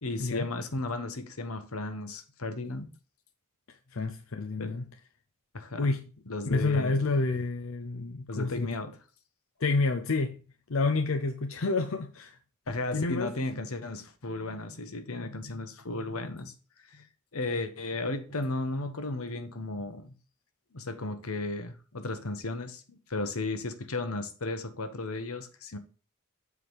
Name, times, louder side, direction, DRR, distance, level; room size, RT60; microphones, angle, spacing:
voice 1, 0.0-2.9 4.6-4.8 5.5-6.0 6.3-7.1 8.3-9.0 12.7-16.5 16.9-17.0 17.3-20.1 20.7-25.8, left 2 dB, 85° left, 1.2 m, -35 dB
voice 2, 3.9-4.8 5.8-6.1 6.5-8.7 9.6-10.4 10.7-12.4 12.9-13.3, left 3 dB, 65° left, 0.6 m, -29 dB
7.3 x 4.9 x 4.8 m
head